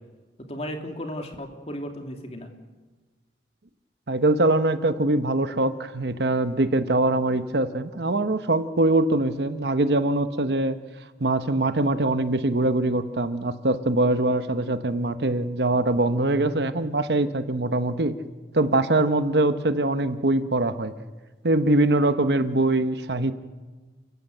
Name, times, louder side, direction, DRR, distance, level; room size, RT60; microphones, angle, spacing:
voice 1, 0.5-2.5, equal, 35° left, 3 dB, 2.6 m, -34 dB
voice 2, 4.1-10.8 11.2-18.2 18.5-20.9 21.4-23.3, right 2 dB, 70° right, 11 dB, 1.0 m, -23 dB
29.0 x 15.5 x 7.9 m, 1.3 s
head